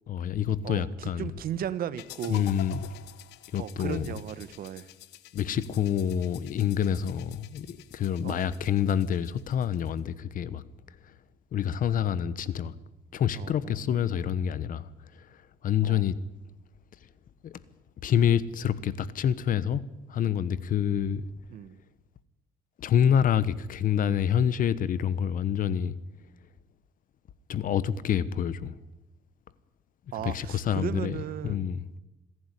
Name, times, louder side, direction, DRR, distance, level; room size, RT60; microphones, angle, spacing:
voice 1, 0.1-1.3 2.3-2.8 3.5-4.1 5.3-10.6 11.5-12.7 13.1-14.9 15.2-15.3 15.6-16.2 17.4-17.6 18.0-19.8 20.1-21.3 22.8-25.9 27.5-28.7 30.2-31.2 31.4-31.8, left 9 dB, 55° left, 1.1 m, -27 dB
voice 2, 0.6-2.5 3.6-4.9 8.2-8.5 13.3-13.8 15.8-16.1 21.0-21.1 21.5-21.8 30.1-32.0, right 10 dB, 60° right, 1.3 m, -36 dB
sound 1, 2.0-10.0, left 13 dB, 90° left, 1.1 m, -48 dB
26.5 x 11.0 x 10.0 m
cardioid pair, 110°, 17 cm